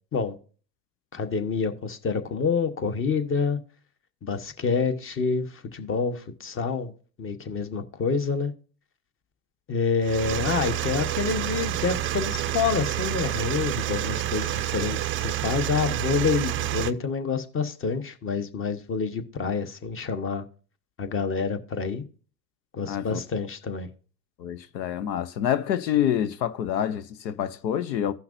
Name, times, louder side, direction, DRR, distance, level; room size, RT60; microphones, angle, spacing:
voice 1, 1.1-3.6 4.2-6.9 7.2-8.5 9.7-20.4 21.0-22.0 22.7-23.9, left 5 dB, 25° left, 1.1 m, -27 dB
sound 1, 10.0-16.9, right 13 dB, 25° right, 0.4 m, -28 dB
voice 2, 22.9-23.2 24.4-28.1, left 10 dB, 85° left, 0.8 m, -27 dB
16.0 x 5.8 x 2.6 m
hypercardioid pair, 100°, 50 cm